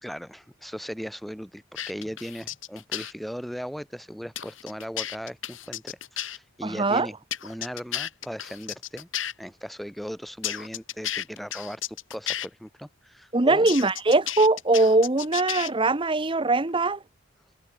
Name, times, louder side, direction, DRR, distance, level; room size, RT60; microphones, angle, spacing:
voice 1, 0.0-7.2 7.4-9.1 9.4-13.7, equal, ahead, 2.8 m, -38 dB
sound 1, 1.8-3.1 4.4-6.4 7.3-9.3 10.4-12.5 13.7-15.7, left 11 dB, 80° left, 7.3 m, -33 dB
voice 2, 6.6-7.1 13.3-17.0, right 2 dB, 25° right, 1.0 m, -21 dB
head